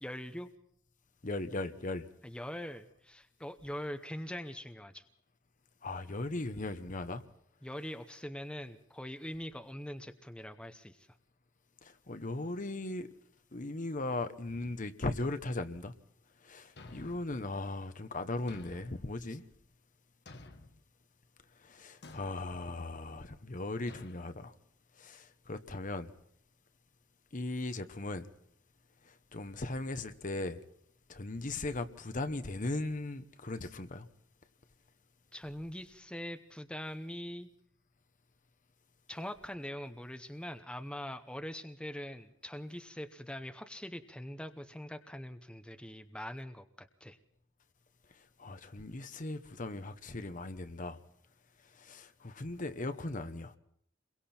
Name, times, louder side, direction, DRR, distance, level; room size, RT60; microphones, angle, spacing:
voice 1, 0.0-0.5 2.2-5.0 7.6-11.1 35.3-37.5 39.1-47.2, equal, 5° left, 0.9 m, -43 dB
voice 2, 1.2-2.1 5.8-7.2 11.8-13.1 13.5-15.9 16.4-19.4 21.6-24.5 25.0-26.1 27.3-28.3 29.0-30.6 31.1-34.1 48.2-51.0 51.7-53.5, left 2 dB, 40° left, 1.0 m, -38 dB
Thump thud, 16.8-17.4 18.5-19.1 20.3-20.8 22.0-22.4 23.9-24.2, left 2 dB, 55° left, 1.3 m, -51 dB
29.0 x 22.5 x 4.4 m
head